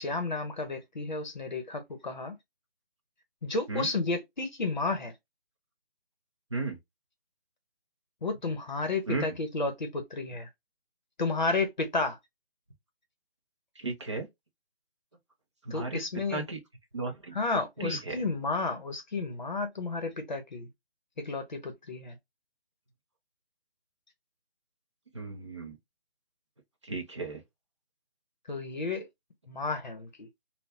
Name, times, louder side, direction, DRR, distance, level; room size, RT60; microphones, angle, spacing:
voice 1, 0.0-2.4 3.4-5.1 8.2-10.5 11.2-12.2 15.7-16.5 17.3-20.7 21.2-22.2 28.5-29.1 29.5-30.3, left 3 dB, 45° left, 0.9 m, -32 dB
voice 2, 13.8-14.3 15.6-16.0 16.3-16.6 16.9-17.3 17.8-18.2 25.1-25.8 26.8-27.4, right 3 dB, 30° right, 0.7 m, -34 dB
3.8 x 2.3 x 2.7 m
hypercardioid pair, 175°, 31 cm